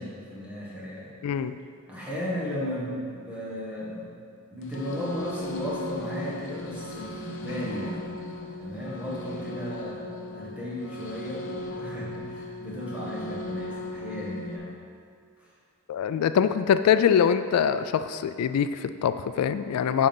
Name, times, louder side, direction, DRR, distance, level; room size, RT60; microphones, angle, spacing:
voice 1, 0.0-1.1 1.9-4.1 4.5-8.2 8.6-14.7 15.4-15.5, left 1 dB, 5° right, -6 dB, 1.5 m, -35 dB
voice 2, 1.2-1.5 15.9-20.1, left 8 dB, 85° left, 15 dB, 0.3 m, -23 dB
sound 1, 4.6-14.6, left 1 dB, 60° left, 0.7 m, -37 dB
9.8 x 3.8 x 5.3 m, 2.3 s
head